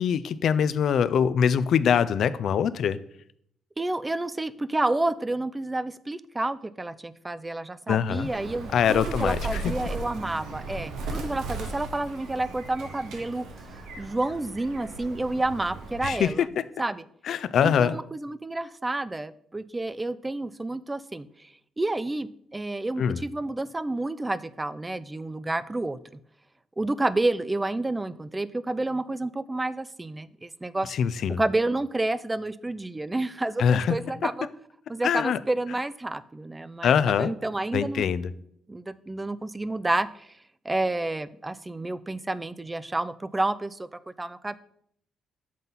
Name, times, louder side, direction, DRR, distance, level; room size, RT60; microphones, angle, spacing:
voice 1, 0.0-3.0 7.9-8.3 8.7-9.6 16.0-16.3 17.3-18.0 23.0-23.2 30.9-31.4 33.6-33.9 35.0-35.4 36.8-37.3 37.7-38.3, left 8 dB, 65° left, 14 dB, 0.4 m, -23 dB
voice 2, 3.8-13.4 14.0-16.5 16.8-17.0 17.6-21.5 21.8-26.0 26.8-31.0 31.4-34.5 34.9-38.0 38.7-40.3 40.6-44.6, right 2 dB, 15° right, 16 dB, 0.4 m, -30 dB
Bird, 8.0-16.3, right 2 dB, 80° right, 1.2 m, -37 dB
7.4 x 3.9 x 5.6 m, 0.67 s
cardioid pair, 90°, 0 cm